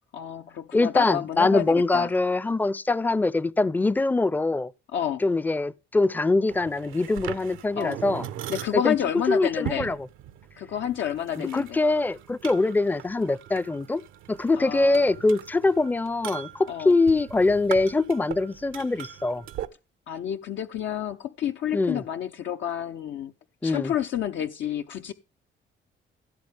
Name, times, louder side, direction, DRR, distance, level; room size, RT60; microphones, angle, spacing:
voice 1, 0.1-2.1 4.9-5.2 7.8-8.0 8.5-9.9 10.6-11.8 14.6-15.1 16.7-17.0 20.1-23.3 23.6-25.1, left 10 dB, 70° left, 0.7 m, -29 dB
voice 2, 0.7-4.7 5.2-8.3 8.7-9.0 9.3-10.0 11.4-14.0 14.3-19.4 21.7-22.0 23.6-23.9, left 3 dB, 10° left, 0.5 m, -23 dB
sound 1, 6.5-19.7, right 11 dB, 90° right, 0.9 m, -40 dB
16.0 x 7.3 x 3.4 m
cardioid pair, 90°, 20 cm